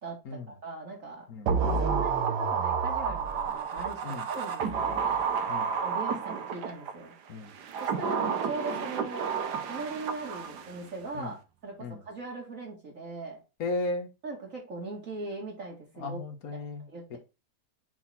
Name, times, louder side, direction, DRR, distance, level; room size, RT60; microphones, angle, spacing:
voice 1, 0.0-5.3 5.8-7.1 7.8-9.3 9.7-13.4 14.2-16.2 16.9-17.2, right 3 dB, 55° right, 2.5 m, -40 dB
sound 1, 1.5-6.9 7.5-10.8 11.1-11.2, right 6 dB, 85° right, 1.6 m, -30 dB
voice 2, 13.6-14.1 16.0-17.2, left 2 dB, 65° left, 1.7 m, -35 dB
6.9 x 4.1 x 4.3 m
omnidirectional pair, 1.7 m